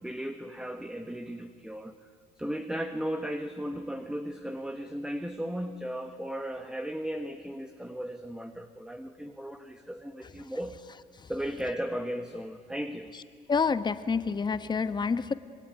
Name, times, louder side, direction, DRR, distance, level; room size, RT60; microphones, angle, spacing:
voice 1, 0.0-2.1 2.4-10.8 11.3-13.1, equal, 5° right, 7 dB, 1.3 m, -36 dB
voice 2, 13.5-15.3, left 5 dB, 25° left, 12 dB, 1.1 m, -28 dB
25.5 x 21.0 x 9.9 m, 2.2 s
cardioid pair, 110°, 17 cm